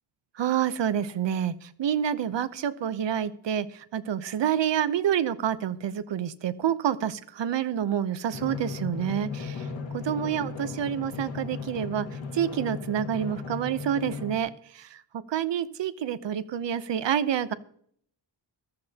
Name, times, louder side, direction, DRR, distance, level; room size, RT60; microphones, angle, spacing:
voice 1, 0.4-9.7 9.9-12.1 12.3-15.0 15.3-17.5, right 9 dB, 75° right, 13 dB, 0.8 m, -28 dB
Drum, 8.3-14.4, left 5 dB, 85° left, 1.9 m, -36 dB
14.5 x 13.5 x 2.8 m, 0.62 s
wide cardioid pair, 170°, 44 cm